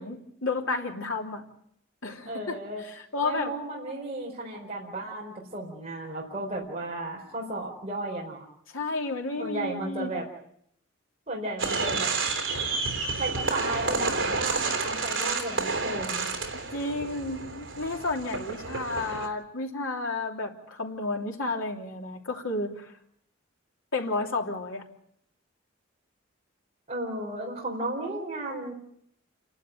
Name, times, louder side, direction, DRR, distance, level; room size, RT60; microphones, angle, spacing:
voice 1, 0.0-1.4 2.0-3.6 8.7-10.1 16.5-22.9 23.9-24.8, left 3 dB, 85° left, 1 dB, 3.3 m, -32 dB
voice 2, 2.3-2.8 3.2-8.4 9.4-10.3 11.3-12.1 13.2-16.3 26.9-28.7, right 2 dB, 30° right, -2 dB, 4.5 m, -34 dB
sound 1, 11.6-19.3, right 4 dB, 75° right, 3.3 m, -30 dB
29.0 x 12.0 x 9.3 m, 0.72 s
head